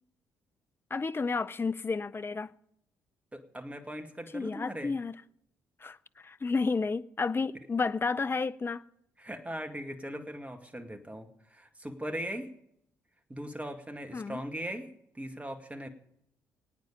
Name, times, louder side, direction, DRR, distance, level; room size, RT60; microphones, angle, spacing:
voice 1, 0.9-2.5 4.3-5.1 5.8-8.8 14.1-14.4, left 4 dB, 25° left, 0.7 m, -31 dB
voice 2, 3.3-4.9 9.2-12.5 13.3-15.9, equal, 15° right, 2.1 m, -39 dB
23.0 x 9.2 x 5.1 m
figure-of-eight pair, 45°, 9 cm